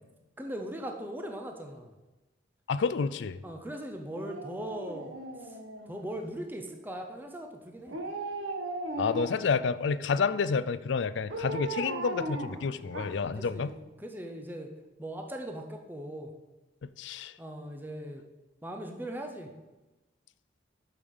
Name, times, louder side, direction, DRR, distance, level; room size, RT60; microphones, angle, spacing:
voice 1, 0.4-1.9 3.4-5.6 5.9-8.0 13.4-14.7 15.0-16.3 17.4-18.2 18.6-19.5, right 1 dB, 10° right, 3 dB, 0.7 m, -39 dB
voice 2, 2.7-3.4 9.0-13.7 16.8-17.3, left 5 dB, 65° left, 15 dB, 0.4 m, -29 dB
Dog, 4.1-6.2 7.9-9.6 11.3-13.4 13.8-13.9, right 2 dB, 80° right, 1.1 m, -37 dB
8.5 x 6.7 x 5.4 m, 1.1 s
head